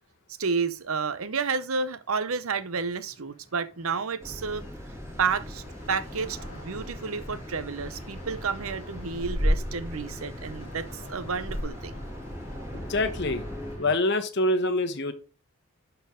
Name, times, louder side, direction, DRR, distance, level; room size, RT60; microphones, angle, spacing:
voice 1, 0.4-4.6 5.2-12.0, right 5 dB, 70° right, 0.7 m, -31 dB
sound 1, 1.3-14.0, left 1 dB, 30° left, 4.7 m, -48 dB
sound 2, 4.2-13.8, equal, 15° right, 2.4 m, -35 dB
voice 2, 12.7-13.4 13.8-15.1, left 2 dB, 50° left, 1.1 m, -25 dB
11.5 x 4.5 x 3.7 m
head